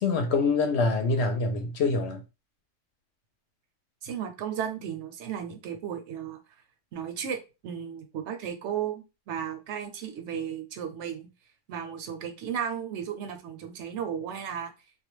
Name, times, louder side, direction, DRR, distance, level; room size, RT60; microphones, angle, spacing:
voice 1, 0.0-2.2, left 3 dB, 65° left, 0.9 m, -25 dB
voice 2, 4.0-6.4 6.9-7.4 7.6-11.3 11.7-14.7, right 8 dB, 70° right, 0.8 m, -34 dB
2.4 x 2.2 x 3.0 m
omnidirectional pair, 1.3 m